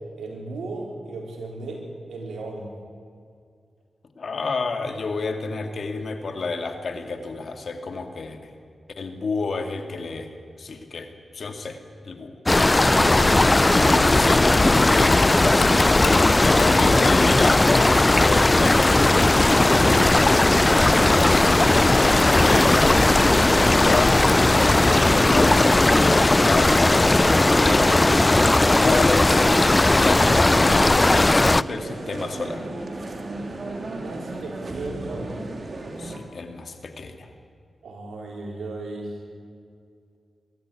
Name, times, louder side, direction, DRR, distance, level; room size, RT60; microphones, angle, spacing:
voice 1, 0.2-2.7 12.8-14.5 14.9-15.2 19.7-20.7 27.5-27.9 33.9-35.4 37.8-39.1, right 2 dB, 90° right, 0 dB, 4.4 m, -35 dB
voice 2, 4.2-8.5 9.0-10.3 10.6-11.8 12.0-12.4 14.1-16.0 16.4-19.5 21.8-24.2 24.7-26.8 27.6-28.2 28.8-32.7 36.0-37.3, left 4 dB, 70° left, 6 dB, 2.2 m, -30 dB
sound 1, 12.5-31.6, left 2 dB, 25° left, 0.5 m, -17 dB
Typing, 12.9-25.6, left 4 dB, 90° left, 1.7 m, -33 dB
sound 2, 21.3-36.2, right 2 dB, 55° right, 3.2 m, -35 dB
23.0 x 13.5 x 9.7 m, 2.4 s
cardioid pair, 50°, 0 cm